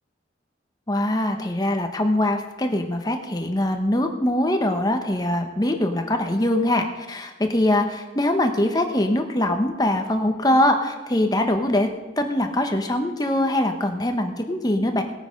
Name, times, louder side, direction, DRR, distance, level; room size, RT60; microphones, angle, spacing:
voice 1, 0.9-11.9 12.2-15.0, left 1 dB, 20° left, 5 dB, 1.0 m, -22 dB
18.5 x 8.9 x 5.2 m, 1.2 s
head